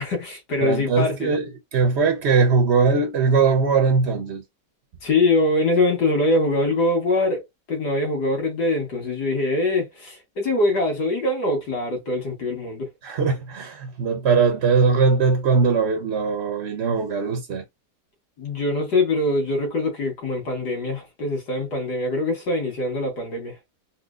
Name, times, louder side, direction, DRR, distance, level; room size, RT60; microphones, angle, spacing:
voice 1, 0.0-1.3 5.0-7.4 7.7-12.9 18.4-23.5, left 2 dB, 70° left, 2.0 m, -23 dB
voice 2, 0.6-4.4 13.0-17.6, right 5 dB, 70° right, 0.6 m, -20 dB
4.2 x 2.1 x 2.4 m
omnidirectional pair, 1.8 m